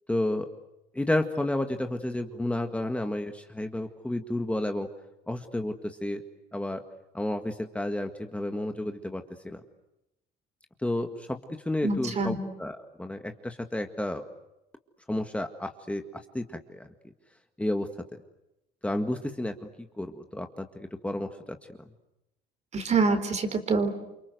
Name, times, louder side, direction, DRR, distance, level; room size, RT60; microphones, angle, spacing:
voice 1, 0.1-0.5 0.9-4.9 5.3-6.2 6.5-6.8 7.1-9.6 10.8-11.4 11.7-14.2 15.1-16.0 16.3-16.9 17.6-17.9 18.8-19.5 20.0-21.3, left 1 dB, 5° left, 6 dB, 1.9 m, -31 dB
voice 2, 11.8-12.3 22.7-23.9, right 4 dB, 40° right, 10 dB, 4.1 m, -25 dB
29.0 x 25.0 x 8.0 m, 0.89 s
cardioid pair, 110°, 17 cm